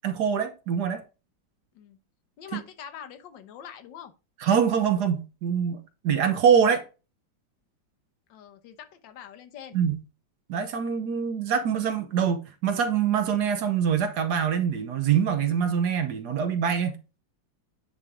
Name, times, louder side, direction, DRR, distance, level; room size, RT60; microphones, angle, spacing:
voice 1, 0.0-1.0 2.5-2.6 4.4-6.8 9.7-10.0 10.5-17.0, right 7 dB, 65° right, 1.2 m, -24 dB
voice 2, 2.4-4.1 8.3-9.8, left 8 dB, 70° left, 1.5 m, -44 dB
9.8 x 3.3 x 3.6 m
omnidirectional pair, 2.1 m